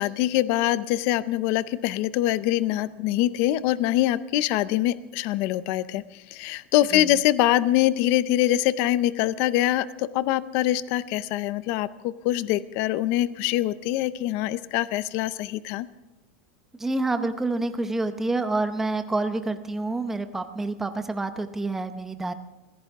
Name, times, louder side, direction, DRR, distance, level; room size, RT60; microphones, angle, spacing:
voice 1, 0.0-15.9, left 14 dB, 35° left, 16 dB, 0.5 m, -24 dB
voice 2, 16.8-22.3, right 2 dB, 5° right, 8 dB, 0.7 m, -28 dB
23.5 x 15.5 x 3.6 m, 1.0 s
supercardioid pair, 180°, 7 cm